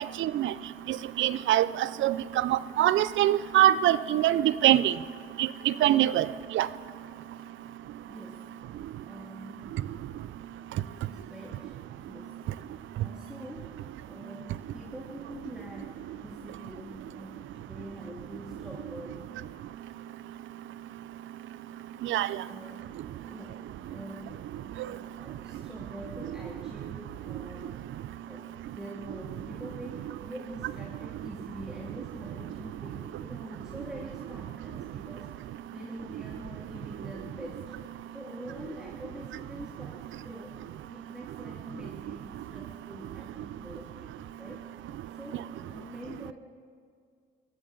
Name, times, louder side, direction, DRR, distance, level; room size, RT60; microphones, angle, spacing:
voice 1, 0.2-0.5 0.9-4.9 5.4-6.3 6.5-6.7 22.0-22.3, right 13 dB, 75° right, 17 dB, 0.5 m, -24 dB
voice 2, 8.1-8.5 9.0-9.8 11.0-11.8 12.1-12.3 13.0-13.8 14.0-19.3 22.4-22.8 23.1-24.4 24.9-27.9 28.3-37.7 38.1-40.6 40.9-44.7 45.2-46.3, equal, 5° right, -2 dB, 2.1 m, -45 dB
19.0 x 14.5 x 3.8 m, 2.2 s
cardioid pair, 90°, 20 cm